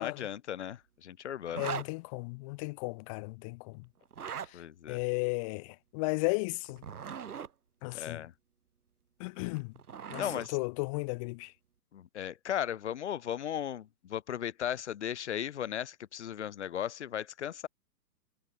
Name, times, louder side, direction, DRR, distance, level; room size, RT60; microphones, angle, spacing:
voice 1, 0.0-1.7 4.5-5.0 7.9-8.3 10.2-10.6 11.9-17.7, left 10 dB, 45° left, 5.4 m, -36 dB
voice 2, 1.5-3.8 4.9-6.8 7.8-8.2 9.2-9.7 10.1-10.2 10.5-11.5, left 28 dB, 20° left, 3.6 m, -34 dB
Zipper (clothing), 1.5-1.9 4.0-4.5 6.6-7.5 9.4-10.5, right 7 dB, 70° right, 6.8 m, -40 dB
hypercardioid pair, 175°, 46 cm